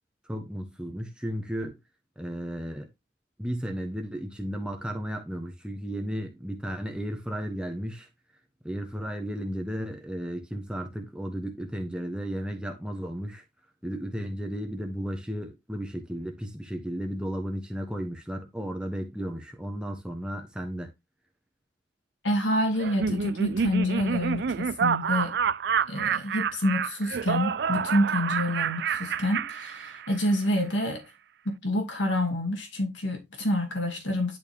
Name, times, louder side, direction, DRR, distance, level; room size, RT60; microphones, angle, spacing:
voice 1, 0.2-1.8 2.2-2.9 3.4-8.1 8.6-13.4 13.8-20.9, equal, 5° right, 1.2 m, -34 dB
voice 2, 22.2-25.4 25.9-31.0 31.4-34.4, left 1 dB, 75° left, 2.5 m, -27 dB
Laughter, 22.8-30.3, right 7 dB, 60° right, 0.4 m, -28 dB
11.0 x 4.5 x 3.5 m
head